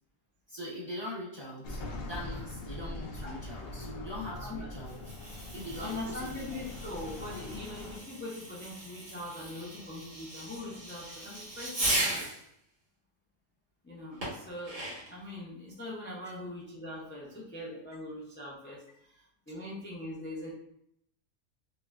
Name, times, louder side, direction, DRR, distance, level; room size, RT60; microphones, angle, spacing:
voice 1, 0.5-5.0 5.5-6.6 16.2-16.3, left 1 dB, 25° right, -6 dB, 0.6 m, -42 dB
sound 1, 1.6-8.0, left 2 dB, 60° left, 0.7 m, -42 dB
Fireworks, 4.8-12.4 14.2-15.2, right 1 dB, 75° right, 2.1 m, -37 dB
voice 2, 5.8-12.3 13.8-20.5, left 1 dB, 15° left, -5 dB, 0.4 m, -42 dB
4.8 x 2.2 x 2.4 m, 0.74 s
omnidirectional pair, 1.3 m